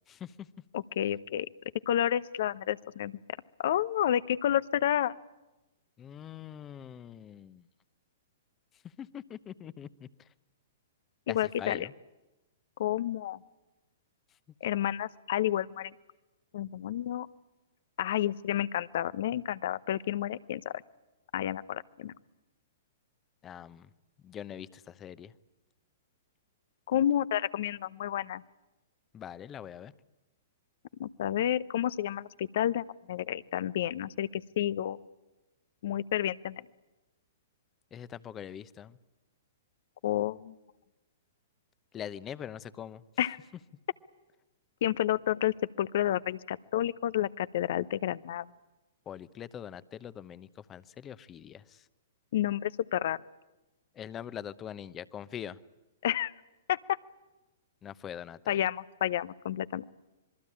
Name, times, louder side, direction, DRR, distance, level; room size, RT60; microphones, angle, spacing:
voice 1, 0.1-0.5 6.0-7.7 8.8-10.1 11.3-11.9 23.4-23.9 24.2-25.3 29.1-29.9 37.9-39.0 41.9-43.0 49.1-51.8 53.9-55.6 57.8-58.6, left 9 dB, 25° left, 16 dB, 0.9 m, -43 dB
voice 2, 0.7-1.5 1.9-3.2 3.6-5.1 11.3-11.8 12.8-13.4 14.6-15.9 16.5-17.3 18.0-20.7 21.3-22.1 26.9-28.4 31.0-35.0 35.8-36.6 40.0-40.6 43.2-43.4 44.8-48.5 52.3-53.2 56.0-56.3 56.7-56.8 58.5-59.8, left 11 dB, 60° left, 18 dB, 0.8 m, -30 dB
26.0 x 22.5 x 8.7 m, 1.1 s
hypercardioid pair, 115°, 0 cm